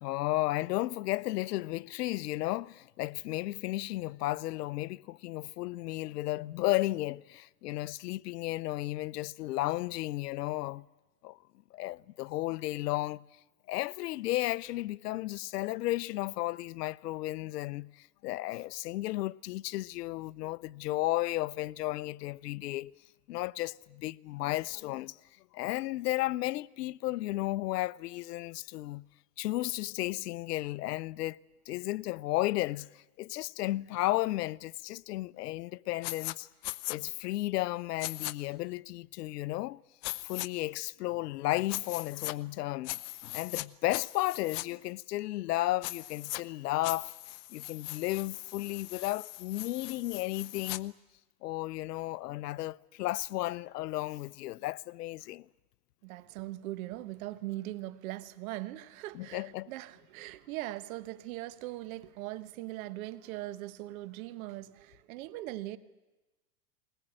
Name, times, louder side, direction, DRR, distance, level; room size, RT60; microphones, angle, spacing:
voice 1, 0.0-10.9 11.2-11.4 11.7-13.2 13.7-22.9 23.3-25.2 25.5-29.0 29.4-31.4 31.7-36.5 36.8-39.8 40.2-47.1 47.5-50.9 51.4-55.5 59.1-59.7, left 17 dB, 85° left, 0.7 m, -33 dB
sound 1, 36.0-36.3 36.6-37.0 38.0-38.3 40.0-40.5 41.7-42.3 42.8-43.7 43.9-44.6 45.8-46.4 46.8-50.8, left 20 dB, 40° left, 0.7 m, -39 dB
voice 2, 56.0-65.8, right 16 dB, 60° right, 1.3 m, -40 dB
20.5 x 20.0 x 8.9 m
supercardioid pair, 135°, 46 cm